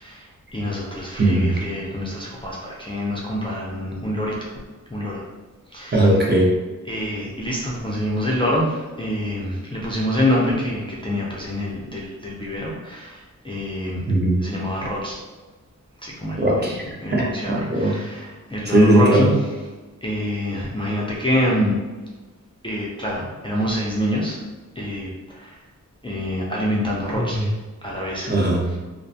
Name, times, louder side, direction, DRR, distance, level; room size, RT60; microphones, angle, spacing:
voice 1, 0.0-4.5 4.9-5.2 5.7-6.1 6.9-14.0 14.4-15.2 16.0-16.7 17.0-19.3 20.0-21.8 22.6-24.4 24.8-25.6 26.0-27.5 27.8-28.3, left 1 dB, 15° left, -5 dB, 0.3 m, -26 dB
voice 2, 1.2-1.6 5.9-6.5 14.1-14.4 16.4-16.8 17.1-18.0 18.7-19.3 27.1-27.5 28.3-28.7, right 1 dB, 30° right, -3 dB, 0.5 m, -18 dB
2.4 x 2.2 x 2.6 m, 1.3 s
wide cardioid pair, 115°, 33 cm